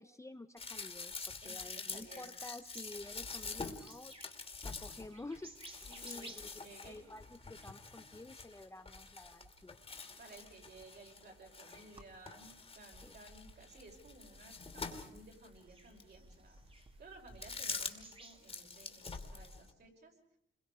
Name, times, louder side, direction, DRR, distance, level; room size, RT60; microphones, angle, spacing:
voice 1, 0.0-4.1 4.6-6.5 6.8-10.2 13.0-13.1, left 2 dB, 15° left, 8 dB, 0.9 m, -51 dB
sound 1, 0.6-12.0 12.3-15.5 16.0-16.1 17.3-18.2 18.4-19.7, left 4 dB, 30° left, 2.7 m, -46 dB
voice 2, 1.4-2.3 5.9-7.1 10.2-20.1, right 2 dB, 55° right, 1 dB, 5.9 m, -57 dB
sound 2, 2.7-19.0, right 2 dB, 25° right, 2.4 m, -59 dB
29.0 x 22.5 x 5.0 m, 0.70 s
wide cardioid pair, 150°, 20 cm